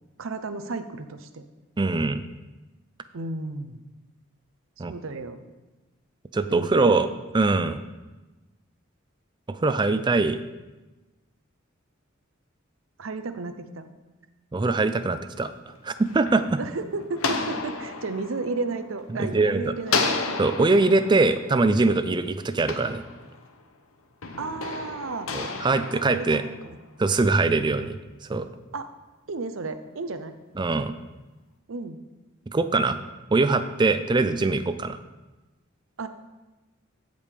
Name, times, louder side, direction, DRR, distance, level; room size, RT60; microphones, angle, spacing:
voice 1, 0.2-1.4 3.1-3.8 4.9-5.4 6.5-7.1 13.0-13.9 16.6-20.2 24.4-25.3 25.9-26.8 28.7-28.9 29.3-30.3 31.7-32.0 36.0-36.1, right 3 dB, 70° right, 9 dB, 0.6 m, -33 dB
voice 2, 1.8-2.2 4.8-4.9 6.3-7.1 7.3-7.8 9.5-10.4 14.5-15.5 15.8-16.6 19.2-19.7 20.4-23.0 25.3-26.4 27.0-28.0 28.3-28.4 30.6-30.9 32.5-33.0 33.3-35.0, right 3 dB, 20° right, 11 dB, 0.4 m, -22 dB
sound 1, 15.7-19.4 19.8-23.6 24.2-26.9, left 4 dB, 85° left, 0.8 m, -32 dB
15.5 x 5.2 x 3.4 m, 1.1 s
head